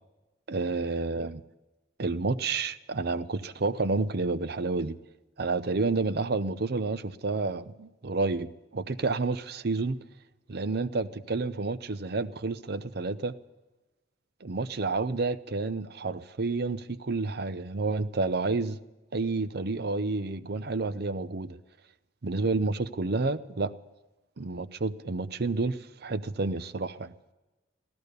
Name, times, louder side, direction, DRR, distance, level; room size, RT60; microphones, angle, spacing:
voice 1, 0.5-1.4 2.0-5.0 5.4-10.0 10.5-13.3 14.4-18.8 19.1-21.6 22.2-23.7 24.4-27.1, right 3 dB, 60° right, 0.7 m, -30 dB
16.5 x 12.5 x 6.7 m
head